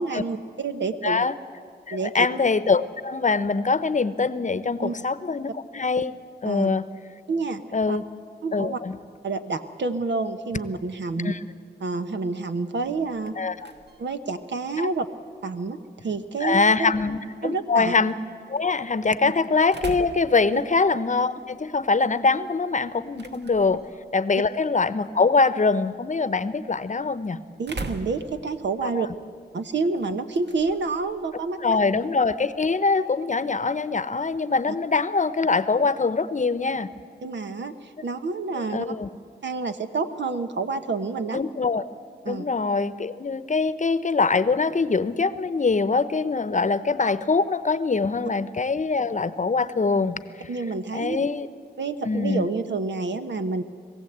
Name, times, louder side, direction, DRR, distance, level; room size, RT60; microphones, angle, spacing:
voice 1, 0.0-1.2 1.9-2.1 4.8-4.9 6.4-6.7 7.3-7.6 7.9-8.0 8.4-8.8 9.2-11.4 11.8-13.3 14.0-15.0 15.4-15.8 16.0-16.9 17.4-17.9 20.5-20.6 27.6-29.1 29.5-31.8 37.2-38.9 39.4-41.4 42.2-42.5 50.5-51.2 51.8-53.6, right 4 dB, 85° right, 8 dB, 1.1 m, -28 dB
voice 2, 1.0-1.3 1.9-6.2 6.4-6.9 7.7-8.0 8.5-9.0 11.2-11.4 13.4-13.7 14.8-14.9 16.4-18.1 18.5-23.8 24.1-27.4 28.8-29.1 31.6-36.9 38.6-39.1 41.3-41.8 42.3-50.5 50.9-51.5 52.1-52.4, left 4 dB, 45° left, 15 dB, 0.8 m, -23 dB
sound 1, 12.8-32.7, right 2 dB, 70° right, 1.4 m, -45 dB
21.5 x 15.5 x 8.1 m, 2.4 s
cardioid pair, 65°, 18 cm